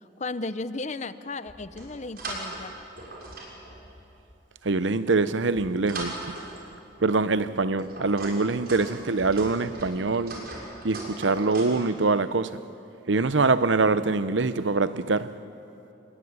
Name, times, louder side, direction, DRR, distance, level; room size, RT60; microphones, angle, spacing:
voice 1, 0.2-2.7, left 3 dB, 35° left, 0.7 m, -34 dB
sound 1, 1.5-2.6 3.0-4.3 5.0-6.8 7.4-11.8, right 2 dB, 50° right, 6.3 m, -39 dB
voice 2, 4.6-6.4 7.0-10.4 10.8-12.6 13.1-15.4, right 3 dB, 75° right, 0.8 m, -24 dB
28.0 x 21.5 x 9.7 m
head